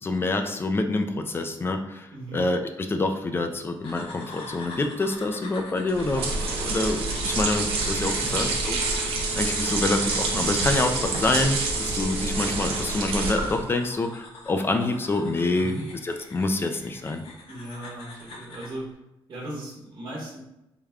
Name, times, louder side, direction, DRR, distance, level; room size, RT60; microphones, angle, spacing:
voice 1, 0.0-15.7 16.0-17.2, left 2 dB, 25° left, 6 dB, 0.3 m, -27 dB
voice 2, 2.1-2.5 8.1-8.5 15.6-15.8 17.4-18.9 19.3-20.4, right 1 dB, 55° right, -6 dB, 1.0 m, -37 dB
sound 1, 3.8-18.8, left 2 dB, 85° left, 0.7 m, -45 dB
sound 2, 5.9-13.7, right 3 dB, 90° right, 0.7 m, -27 dB
3.4 x 2.2 x 3.5 m, 0.89 s
cardioid pair, 125°, 9 cm